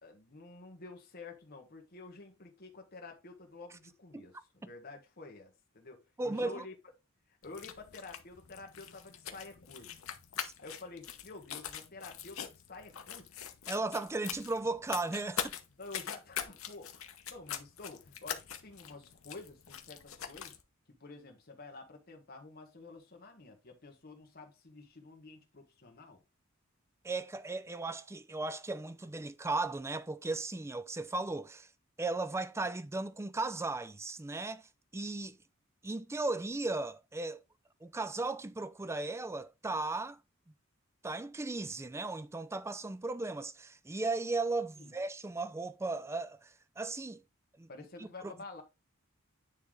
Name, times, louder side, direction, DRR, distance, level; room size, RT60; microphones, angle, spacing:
voice 1, 0.0-6.8 7.3-9.9 10.6-13.4 15.8-17.0 17.3-20.6 20.9-26.2 44.8-45.0 47.7-48.6, left 3 dB, 50° left, 1.6 m, -50 dB
voice 2, 6.2-6.6 10.4-10.5 13.7-15.5 27.0-31.7 32.0-35.4 35.8-37.4 37.8-40.2 41.0-47.2 47.6-47.7 48.0-48.3, right 2 dB, 15° right, 0.4 m, -36 dB
sound 1, 7.4-20.6, left 8 dB, 80° left, 0.9 m, -43 dB
9.5 x 3.3 x 3.8 m
head